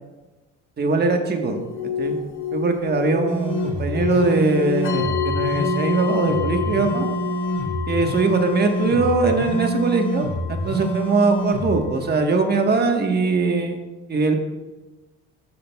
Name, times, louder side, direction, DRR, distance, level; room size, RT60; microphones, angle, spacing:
voice 1, 0.8-1.6 2.0-2.2 2.5-7.1 7.9-13.8 14.1-14.3, right 3 dB, 30° right, 4 dB, 1.3 m, -21 dB
sound 1, 1.5-12.5, left 6 dB, 40° left, 1.5 m, -29 dB
sound 2, 3.3-11.8, right 1 dB, 15° left, 1.7 m, -27 dB
13.0 x 6.6 x 2.3 m, 1.2 s
supercardioid pair, 100°, 33 cm